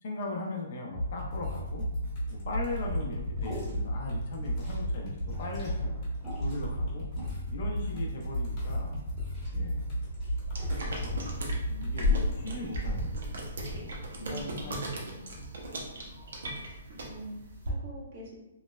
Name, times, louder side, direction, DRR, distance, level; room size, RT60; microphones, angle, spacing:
voice 1, 0.0-1.9 2.3-5.9 6.4-7.1 7.5-9.0 9.5-9.9 11.0-11.1 11.8-13.2 13.7-14.0 14.3-14.9 15.3-15.5, left 2 dB, 45° left, 0 dB, 0.4 m, -38 dB
sound 1, 0.9-12.4, equal, 25° left, 0.9 m, -33 dB
Liquid, 2.7-13.8, left 3 dB, ahead, 0.8 m, -39 dB
sound 2, 10.5-17.7, right 1 dB, 75° right, 0.6 m, -38 dB
voice 2, 11.6-12.1 14.1-15.3 16.8-18.3, right 1 dB, 35° right, -3 dB, 0.6 m, -45 dB
3.0 x 2.0 x 2.2 m, 0.95 s
hypercardioid pair, 170°, 0 cm